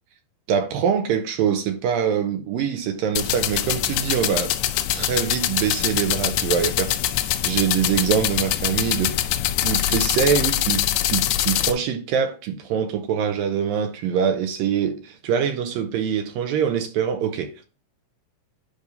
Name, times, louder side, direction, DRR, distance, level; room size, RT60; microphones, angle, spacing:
voice 1, 0.5-4.5 4.9-17.6, right 7 dB, 80° right, 2.2 m, -24 dB
sound 1, 3.2-11.7, left 12 dB, 80° left, 1.9 m, -23 dB
9.8 x 5.3 x 2.7 m
omnidirectional pair, 4.4 m